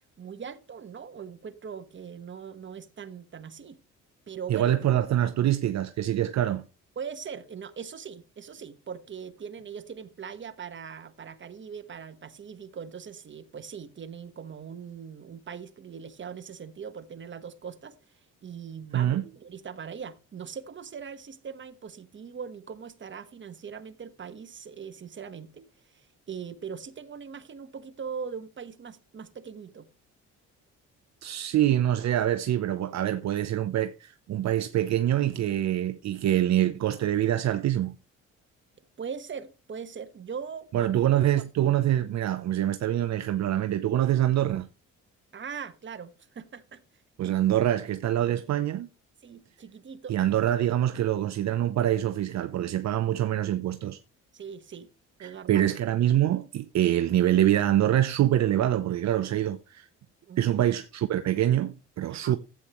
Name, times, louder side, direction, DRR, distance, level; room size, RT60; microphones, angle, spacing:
voice 1, 0.2-3.8 4.3-4.9 6.9-18.0 18.4-29.9 39.0-41.0 45.3-46.8 47.2-47.3 49.2-50.2 54.3-54.9 55.2-55.6 60.3-60.6 62.1-62.4, right 6 dB, 40° right, 1.3 m, -41 dB
voice 2, 4.5-6.6 18.9-19.2 31.2-37.9 40.7-44.7 47.2-48.9 50.1-54.0 55.2-59.9 60.4-62.4, right 12 dB, 60° right, 0.7 m, -25 dB
12.5 x 8.4 x 3.1 m
cardioid pair, 90°, 30 cm